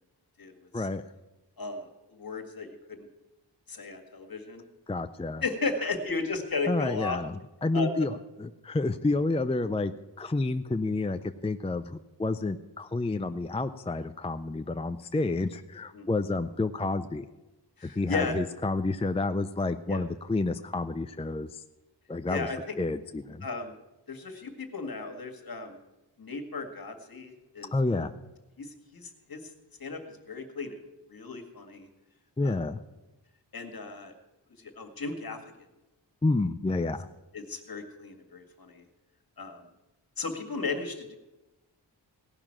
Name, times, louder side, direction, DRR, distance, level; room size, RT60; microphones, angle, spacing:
voice 1, 0.4-0.9 1.6-3.1 3.7-4.6 5.4-7.2 7.7-7.9 15.9-16.1 17.8-18.3 19.9-20.0 22.3-22.8 23.4-23.7 24.1-25.8 26.2-28.0 28.6-29.5 29.8-30.7 31.1-31.9 32.4-32.6 33.5-34.1 34.6-35.4 37.3-38.8 39.4-39.6 40.2-41.2, left 3 dB, 55° left, 4 dB, 2.0 m, -35 dB
voice 2, 4.9-5.4 6.7-9.9 10.2-17.3 17.8-21.6 22.1-22.5 22.8-23.5 27.7-28.1 32.4-32.8 36.2-37.1, left 2 dB, 15° left, 9 dB, 0.5 m, -29 dB
17.5 x 6.0 x 8.8 m, 1.0 s
wide cardioid pair, 75°, 43 cm